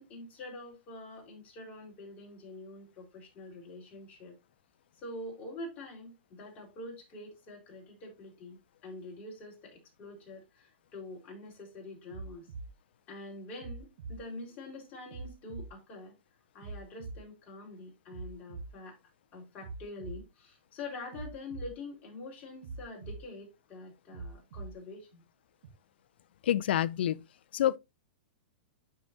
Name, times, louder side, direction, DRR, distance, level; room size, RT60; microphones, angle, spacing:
voice 1, 0.0-4.4 5.0-12.5 13.1-16.1 16.5-19.0 19.3-25.2, left 2 dB, 25° left, 4.1 m, -45 dB
sound 1, 12.1-12.7 13.6-14.2 15.1-15.7 16.6-17.2 18.1-18.7 19.6-20.2 21.1-21.7 22.6-23.2 24.1-24.7 25.6-25.7, right 3 dB, 60° right, 1.3 m, -42 dB
voice 2, 26.4-27.3 27.5-27.8, left 11 dB, 70° left, 0.5 m, -27 dB
12.5 x 4.8 x 2.6 m
hypercardioid pair, 150°, 6 cm